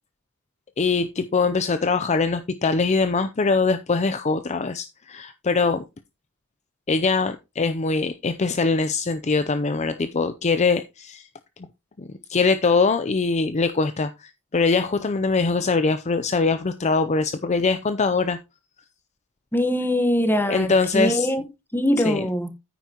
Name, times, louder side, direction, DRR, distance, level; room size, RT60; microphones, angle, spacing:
voice 1, 0.8-5.8 6.9-11.3 12.0-18.4 20.5-21.3 22.0-22.2, left 4 dB, 30° left, 0.5 m, -22 dB
voice 2, 19.5-21.4 21.7-22.5, equal, 10° left, 1.1 m, -22 dB
9.4 x 9.2 x 2.9 m
head